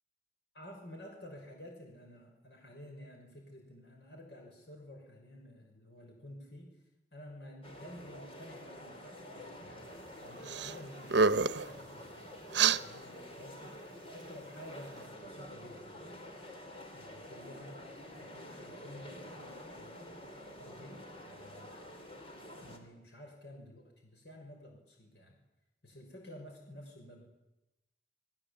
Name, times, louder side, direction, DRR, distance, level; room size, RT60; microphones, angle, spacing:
voice 1, 0.5-6.8 7.1-9.9 10.2-12.3 12.8-13.8 14.1-16.3 16.9-20.0 20.6-21.7 22.6-25.4 25.8-27.3, left 1 dB, 75° left, 1 dB, 6.0 m, -51 dB
sound 1, 7.6-22.8, left 1 dB, 30° left, 4.2 m, -48 dB
sound 2, 10.5-10.7 11.0-11.7 12.5-12.8, right 5 dB, 80° right, 0.9 m, -26 dB
28.5 x 21.5 x 8.6 m, 0.96 s
head